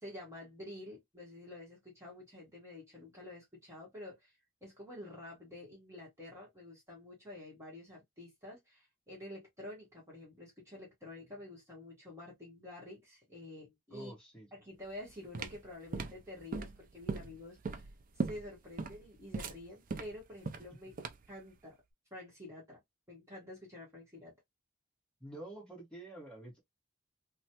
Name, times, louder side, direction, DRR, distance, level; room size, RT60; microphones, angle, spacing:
voice 1, 0.0-4.3 4.6-14.1 14.5-17.9 18.2-20.9 21.3-21.8 22.1-22.8 23.1-24.3, left 1 dB, 15° right, 1.3 m, -49 dB
voice 2, 13.9-14.5 25.2-26.6, right 1 dB, 5° left, 1.5 m, -48 dB
sound 1, 14.9-21.4, right 4 dB, 45° right, 0.4 m, -39 dB
3.1 x 2.3 x 2.8 m
head